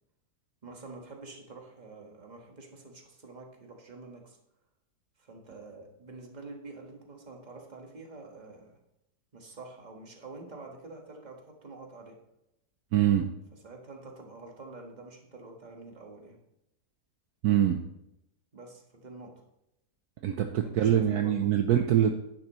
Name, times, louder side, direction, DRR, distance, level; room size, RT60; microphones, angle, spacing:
voice 1, 0.6-4.4 5.2-8.8 9.3-12.2 13.6-16.4 18.5-19.3 20.6-21.5, right 3 dB, 25° right, 1 dB, 1.6 m, -47 dB
voice 2, 12.9-13.3 17.4-17.8 20.2-22.1, right 10 dB, 70° right, 5 dB, 1.1 m, -24 dB
10.5 x 10.5 x 3.1 m, 0.84 s
omnidirectional pair, 1.8 m